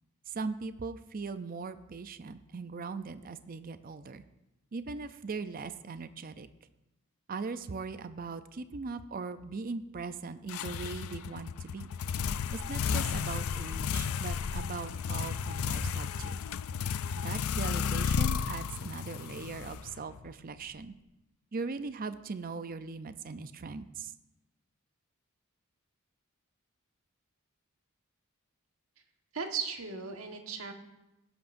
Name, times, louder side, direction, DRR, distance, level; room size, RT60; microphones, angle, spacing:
voice 1, 0.3-4.2 4.7-6.5 7.3-11.9 12.5-16.4 17.1-20.9 21.5-24.1, right 4 dB, 40° right, 11 dB, 0.5 m, -39 dB
sound 1, 10.5-20.3, left 6 dB, 75° left, 0.4 m, -33 dB
voice 2, 29.3-30.7, right 5 dB, 70° right, 4 dB, 1.5 m, -36 dB
18.0 x 10.5 x 2.6 m, 0.95 s
head